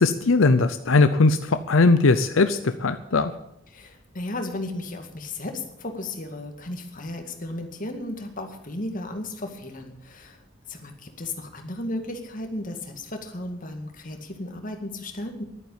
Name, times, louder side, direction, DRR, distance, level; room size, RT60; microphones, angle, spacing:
voice 1, 0.0-3.3, left 3 dB, 90° left, 10 dB, 0.7 m, -19 dB
voice 2, 3.7-10.4 10.7-15.4, left 1 dB, 45° left, 4 dB, 2.1 m, -34 dB
11.5 x 9.1 x 8.9 m, 0.78 s
head